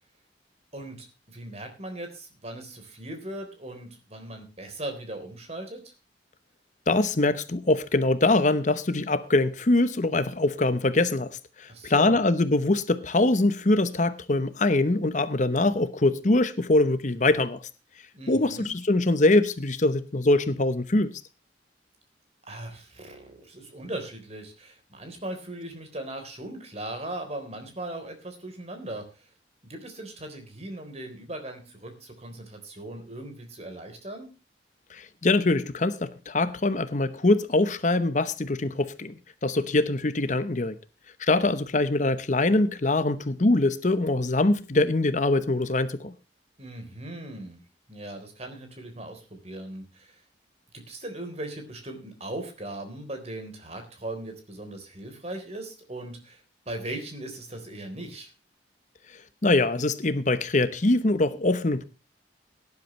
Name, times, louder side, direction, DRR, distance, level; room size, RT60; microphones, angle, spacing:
voice 1, 0.7-5.8 11.7-12.2 18.1-18.7 22.5-29.3 29.6-34.3 46.6-47.6 47.9-50.2 50.9-58.3, right 1 dB, 35° right, 3.7 m, -39 dB
voice 2, 6.9-17.6 18.3-21.1 34.9-39.1 39.4-40.8 41.2-46.1 59.4-61.8, left 2 dB, 40° left, 0.9 m, -23 dB
18.0 x 10.5 x 3.2 m
head